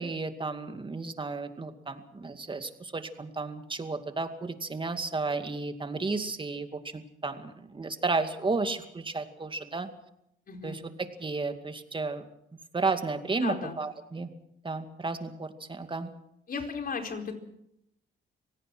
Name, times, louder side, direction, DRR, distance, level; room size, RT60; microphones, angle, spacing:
voice 1, 0.0-9.9 10.6-10.8 11.2-12.2 12.7-14.3 14.6-16.1, right 3 dB, 25° right, 7 dB, 2.4 m, -33 dB
voice 2, 10.5-10.8 13.3-13.8 16.5-17.4, left 5 dB, 45° left, 4 dB, 4.5 m, -35 dB
25.5 x 17.5 x 6.2 m, 0.78 s
cardioid pair, 90°, 20 cm